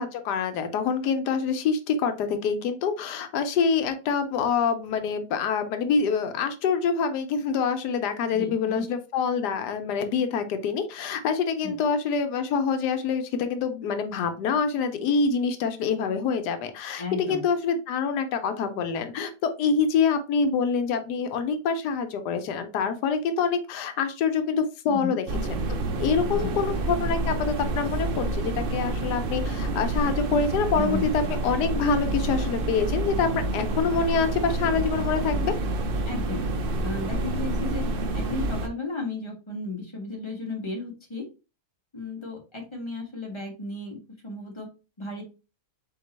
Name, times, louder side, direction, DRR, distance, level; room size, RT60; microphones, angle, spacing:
voice 1, 0.0-25.3 26.0-35.5, left 5 dB, 85° left, 8 dB, 1.2 m, -26 dB
voice 2, 8.3-8.9 11.6-11.8 17.0-17.4 24.9-25.2 26.4-26.5 30.7-31.1 36.0-36.5 36.8-37.9 38.1-41.3 41.9-44.0 44.2-44.7 45.0-45.2, left 3 dB, 20° left, 0 dB, 0.9 m, -34 dB
sound 1, 25.3-38.7, right 2 dB, 80° right, 0.5 m, -28 dB
3.9 x 2.9 x 4.0 m, 0.32 s
omnidirectional pair, 1.7 m